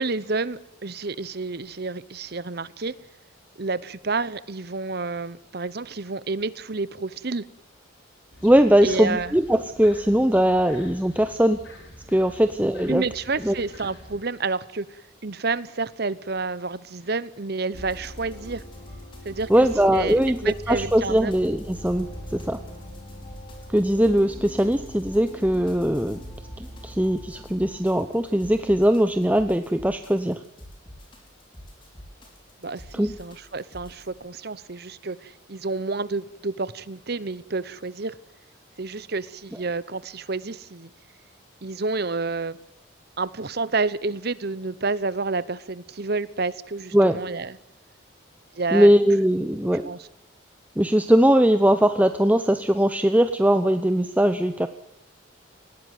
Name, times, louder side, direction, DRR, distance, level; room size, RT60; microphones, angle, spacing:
voice 1, 0.0-2.9 3.6-7.5 8.8-9.3 12.9-18.6 19.2-19.7 19.9-21.3 32.6-38.2 38.8-40.9 41.6-42.6 43.2-47.6 48.5-48.9 49.8-50.1, right 3 dB, 50° right, 17 dB, 0.9 m, -29 dB
sound 1, 8.3-14.2, left 1 dB, 65° left, 5.2 m, -46 dB
voice 2, 8.4-11.6 12.1-13.0 13.4-13.5 19.5-20.4 20.7-22.6 23.7-26.2 26.6-30.4 32.9-33.1 46.9-47.2 48.7-49.9 50.8-54.7, equal, 10° right, 8 dB, 0.8 m, -20 dB
sound 2, 17.7-34.1, equal, 25° left, 4.9 m, -41 dB
19.5 x 17.0 x 9.4 m, 0.85 s
head